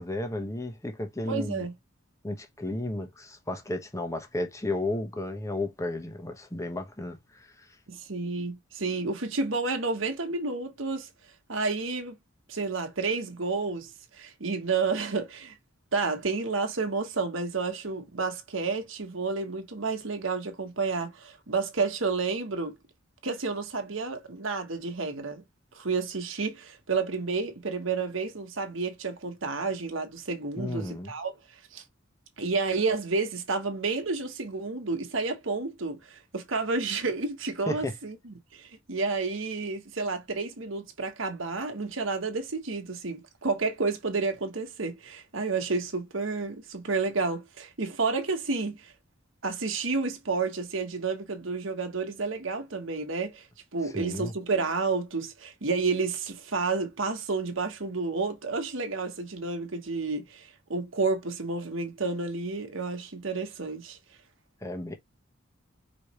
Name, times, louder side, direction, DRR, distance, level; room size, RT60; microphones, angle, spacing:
voice 1, 0.0-1.6 2.2-7.5 30.6-31.1 37.7-37.9 53.8-54.3 64.6-64.9, left 1 dB, 15° left, 1.0 m, -33 dB
voice 2, 1.3-1.7 7.9-11.1 11.5-12.1 12.5-15.5 15.9-22.7 23.2-25.4 25.7-31.3 31.7-31.8 32.4-48.9 49.4-53.4 53.7-64.0, right 4 dB, 75° right, 1.3 m, -30 dB
4.9 x 3.1 x 3.0 m
head